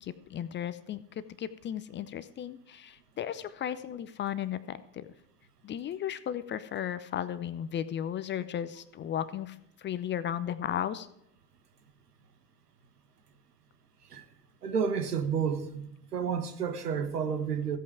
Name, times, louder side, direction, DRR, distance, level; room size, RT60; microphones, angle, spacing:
voice 1, 0.0-5.1 5.6-11.1, left 10 dB, 25° left, 0.6 m, -35 dB
voice 2, 14.6-15.9 16.1-17.8, right 7 dB, 75° right, 1.5 m, -30 dB
15.5 x 8.4 x 4.8 m
figure-of-eight pair, 70°, 47 cm